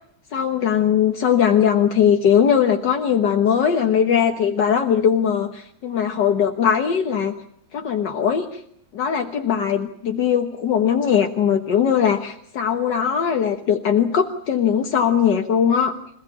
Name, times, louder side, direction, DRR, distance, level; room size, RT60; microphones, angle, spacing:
voice 1, 0.3-7.3 7.7-8.6 8.9-15.9, left 8 dB, 70° left, 4 dB, 1.9 m, -20 dB
26.0 x 17.0 x 9.8 m, 0.68 s
omnidirectional pair, 2.0 m